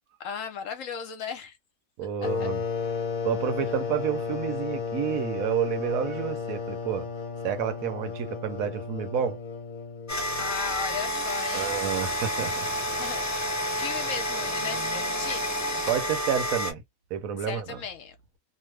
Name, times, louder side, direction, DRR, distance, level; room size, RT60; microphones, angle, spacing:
voice 1, 0.2-1.6 2.2-2.5 10.4-11.8 13.0-15.5 17.4-18.2, left 7 dB, 65° left, 1.0 m, -36 dB
voice 2, 2.0-2.6 3.2-7.1 7.4-9.4 11.5-12.7 15.9-16.8 17.1-17.8, right 9 dB, 70° right, 1.1 m, -29 dB
sound 1, 2.2-10.6, left 5 dB, 35° left, 0.9 m, -33 dB
sound 2, 10.1-16.7, equal, 20° left, 0.4 m, -29 dB
2.9 x 2.0 x 3.3 m
omnidirectional pair, 1.6 m